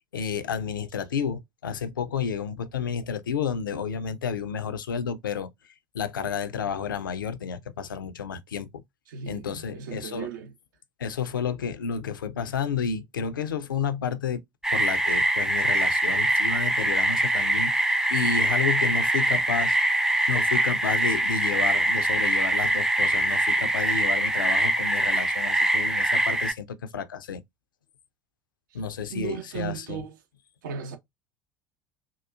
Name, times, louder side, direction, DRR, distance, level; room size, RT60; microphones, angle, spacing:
voice 1, 0.1-5.5 5.9-8.8 9.3-10.3 11.0-14.4 14.7-17.7 18.1-19.8 20.3-27.4 28.7-30.0, left 7 dB, 75° left, 0.4 m, -31 dB
voice 2, 9.1-10.5 29.1-30.2 30.6-31.0, right 8 dB, 65° right, 0.7 m, -36 dB
sound 1, 14.6-26.5, right 1 dB, 5° right, 0.4 m, -23 dB
3.8 x 2.3 x 2.2 m
figure-of-eight pair, 65°, 11 cm